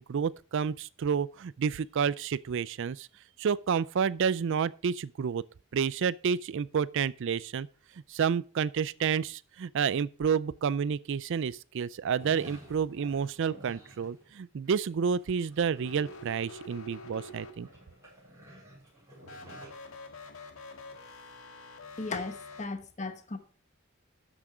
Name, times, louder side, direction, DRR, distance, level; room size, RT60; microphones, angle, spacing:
voice 1, 0.0-3.1 3.4-5.4 5.7-7.7 8.1-17.7, right 6 dB, 60° right, 0.4 m, -30 dB
sound 1, 12.2-14.3 14.6-16.8 17.1-19.8, right 1 dB, 15° right, 5.6 m, -51 dB
sound 2, 15.8-18.0 19.2-22.7, left 2 dB, 80° left, 1.7 m, -47 dB
voice 2, 22.0-23.4, left 3 dB, 35° left, 1.0 m, -36 dB
12.5 x 6.1 x 5.0 m
head